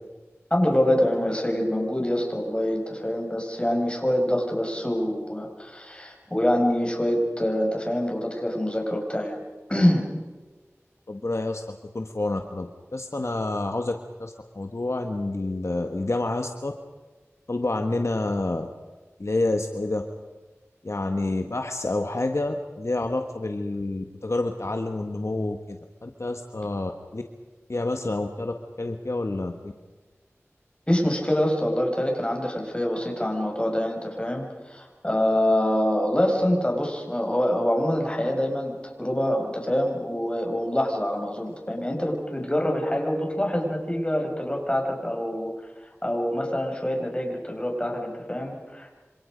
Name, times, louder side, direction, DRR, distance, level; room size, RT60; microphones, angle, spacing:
voice 1, 0.5-9.4 9.7-10.0 30.9-45.5 46.0-49.0, equal, 20° left, 1 dB, 6.3 m, -25 dB
voice 2, 11.1-16.7 17.5-18.7 19.2-20.0 20.8-27.2 27.7-29.7, left 2 dB, 65° left, 5 dB, 1.5 m, -28 dB
27.0 x 26.5 x 5.3 m, 1.3 s
wide cardioid pair, 45°, 5 cm